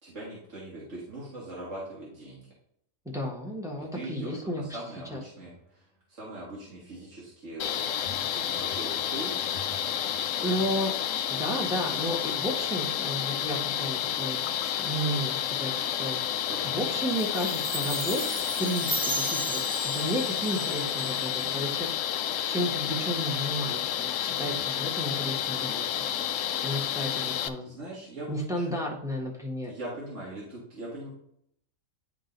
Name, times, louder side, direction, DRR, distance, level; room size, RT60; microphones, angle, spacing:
voice 1, 0.0-2.5 3.8-9.3 10.3-10.6 16.5-16.8 24.4-24.7 27.6-28.8 29.7-31.1, right 1 dB, 65° right, -6 dB, 2.1 m, -41 dB
voice 2, 3.0-4.8 5.1-5.2 10.4-10.9 11.3-14.4 14.8-16.2 16.6-18.2 18.6-19.0 19.3-19.6 19.9-22.1 22.5-26.0 26.6-27.7 28.3-29.7, equal, 5° right, -2 dB, 1.4 m, -32 dB
sound 1, 5.4-5.6 8.0-10.7, left 1 dB, 50° left, 1.0 m, -48 dB
sound 2, 7.6-27.5, left 10 dB, 75° left, 0.9 m, -30 dB
Chime, 17.2-21.6, right 2 dB, 30° right, 0.7 m, -35 dB
10.0 x 3.9 x 3.9 m, 0.70 s
omnidirectional pair, 1.4 m